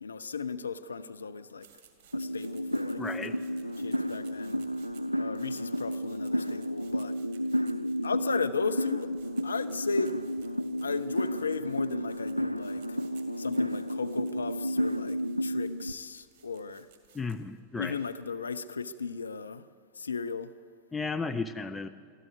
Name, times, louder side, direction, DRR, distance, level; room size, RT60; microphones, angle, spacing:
voice 1, 0.0-1.7 2.1-3.0 3.8-4.7 5.2-7.2 8.0-9.1 9.4-10.2 10.8-13.0 13.4-16.9 17.8-19.7 19.9-20.5, left 5 dB, 75° left, 0.6 m, -35 dB
sound 1, 1.6-18.3, right 8 dB, 45° right, 2.4 m, -61 dB
sound 2, 2.1-15.9, equal, 90° right, 0.4 m, -32 dB
voice 2, 3.0-3.4 17.1-18.0 20.9-21.9, left 4 dB, 10° left, 0.7 m, -34 dB
23.0 x 14.0 x 8.1 m
figure-of-eight pair, 90°, 0 cm